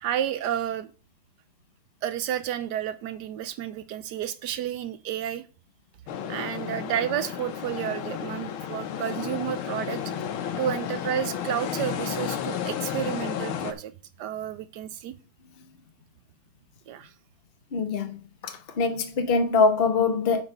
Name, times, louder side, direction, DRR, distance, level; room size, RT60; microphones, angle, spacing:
voice 1, 0.0-0.9 2.0-5.4 6.3-10.0 10.6-13.9 14.2-15.2 16.9-17.1, right 10 dB, 75° right, 1.0 m, -31 dB
sound 1, 6.1-13.7, left 9 dB, 75° left, 1.7 m, -32 dB
voice 2, 17.7-20.4, left 4 dB, 50° left, 0.6 m, -24 dB
7.8 x 5.1 x 5.5 m
omnidirectional pair, 2.3 m